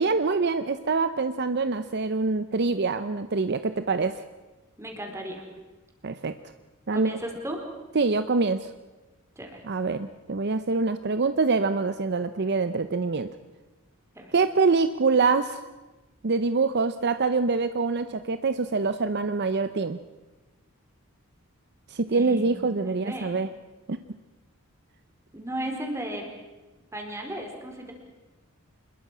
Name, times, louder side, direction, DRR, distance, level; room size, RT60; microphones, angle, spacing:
voice 1, 0.0-4.2 6.0-6.3 6.9-7.2 7.9-8.7 9.6-13.3 14.3-15.6 16.2-20.0 21.9-23.5 23.9-24.0, right 4 dB, 50° right, 11 dB, 0.7 m, -25 dB
voice 2, 4.8-5.4 6.9-7.6 9.4-9.6 14.1-14.3 22.1-23.4 25.3-26.2 26.9-27.9, right 1 dB, 15° right, 2 dB, 4.2 m, -35 dB
26.5 x 21.5 x 6.1 m, 1.2 s
head